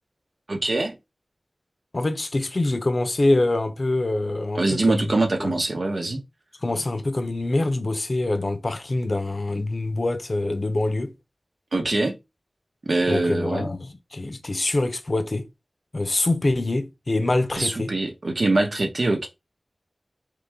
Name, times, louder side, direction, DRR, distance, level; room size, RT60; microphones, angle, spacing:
voice 1, 0.5-1.0 4.5-6.2 11.7-12.2 12.9-13.7 17.6-19.3, right 2 dB, 65° right, 0.9 m, -23 dB
voice 2, 1.9-5.0 5.4-5.5 6.6-11.1 13.1-15.5 15.9-17.9, left 2 dB, 50° left, 0.7 m, -25 dB
3.8 x 3.1 x 3.5 m
wide cardioid pair, 70°, 0 cm